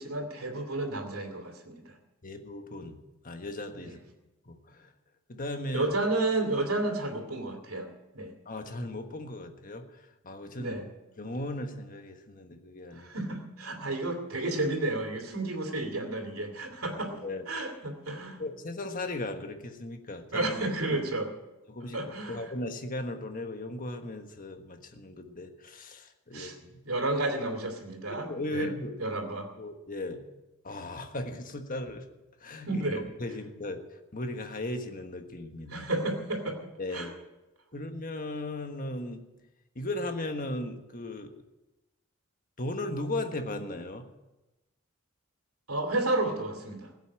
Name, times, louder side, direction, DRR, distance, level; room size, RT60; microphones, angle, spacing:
voice 1, 0.0-2.0 3.8-3.9 5.7-8.3 10.6-10.9 12.9-17.1 17.5-18.4 20.3-21.3 21.9-22.5 26.3-26.5 26.8-28.7 29.0-29.5 32.7-33.0 35.7-36.6 36.9-37.1 45.7-46.9, right 2 dB, 85° right, 2 dB, 2.7 m, -31 dB
voice 2, 2.2-3.0 3.2-4.0 4.5-4.9 5.3-5.9 8.4-10.8 11.2-13.1 17.2-17.4 18.4-20.5 20.9-21.0 21.7-22.0 22.3-26.8 28.1-29.0 29.6-30.2 30.6-32.1 32.4-32.8 33.2-35.9 36.8-37.1 37.7-39.2 39.7-41.3 42.6-44.1, left 1 dB, 40° left, 6 dB, 1.4 m, -37 dB
16.0 x 8.3 x 8.7 m, 1.0 s
head